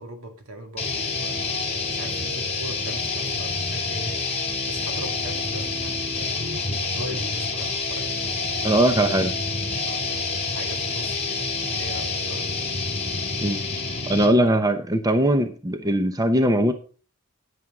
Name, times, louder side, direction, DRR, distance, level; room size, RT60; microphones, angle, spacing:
voice 1, 0.0-6.4 6.9-8.2 8.8-9.2 9.6-12.7, right 1 dB, 80° right, 5 dB, 2.1 m, -39 dB
sound 1, 0.8-14.5, left 3 dB, 30° left, 3.1 m, -28 dB
voice 2, 8.6-9.3 13.4-16.7, right 1 dB, 20° right, 8 dB, 0.8 m, -21 dB
9.4 x 9.2 x 3.7 m, 0.38 s
head